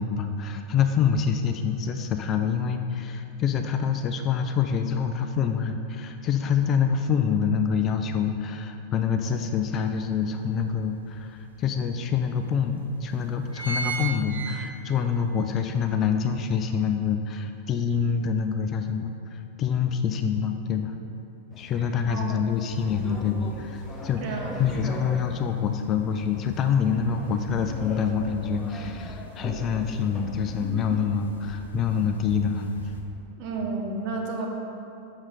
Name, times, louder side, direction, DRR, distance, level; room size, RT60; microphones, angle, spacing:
voice 1, 0.0-21.0 21.6-32.7, left 6 dB, 30° left, 6 dB, 0.4 m, -26 dB
sound 1, 9.3-9.4 9.9-11.1 11.7-11.8 12.0-12.1 12.8-13.0 13.3-15.1 15.5-15.6, right 5 dB, 75° right, 0.8 m, -33 dB
sound 2, 21.5-31.1, left 2 dB, 15° left, 0.9 m, -41 dB
voice 2, 22.1-22.6 24.2-24.9 33.4-34.5, right 3 dB, 40° right, 0 dB, 1.3 m, -32 dB
sound 3, 22.5-33.0, right 1 dB, 70° left, 0.9 m, -44 dB
7.3 x 6.4 x 4.8 m, 2.7 s
figure-of-eight pair, 90°, 0 cm